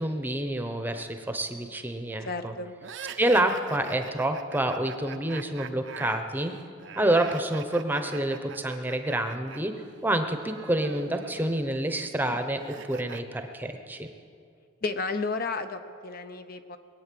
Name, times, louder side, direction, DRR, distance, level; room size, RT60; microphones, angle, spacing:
voice 1, 0.0-2.5 3.2-6.6 7.0-9.7 10.0-14.1, right 1 dB, 10° right, 7 dB, 0.8 m, -28 dB
voice 2, 2.2-2.7 12.2-12.4 14.8-16.8, left 3 dB, 45° left, 9 dB, 0.7 m, -32 dB
sound 1, 2.8-9.6 9.8-13.2, right 6 dB, 60° right, 0.6 m, -43 dB
21.5 x 8.9 x 7.6 m, 2.3 s
head